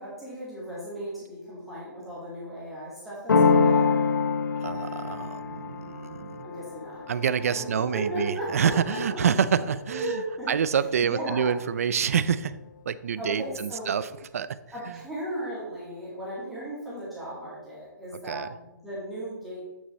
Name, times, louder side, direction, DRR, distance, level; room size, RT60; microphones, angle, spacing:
voice 1, 0.0-4.0 6.4-7.0 7.5-9.2 9.6-10.5 11.0-11.6 13.2-13.9 14.7-19.7, right 1 dB, ahead, -10 dB, 2.0 m, -36 dB
sound 1, 3.3-8.8, left 5 dB, 85° left, 1.0 m, -26 dB
voice 2, 4.6-6.5 7.1-10.2 10.5-12.6 12.9-14.6 14.9-15.0 18.3-18.5, right 7 dB, 50° right, 15 dB, 0.4 m, -27 dB
8.2 x 6.1 x 4.1 m, 0.98 s
hypercardioid pair, 170°, 10 cm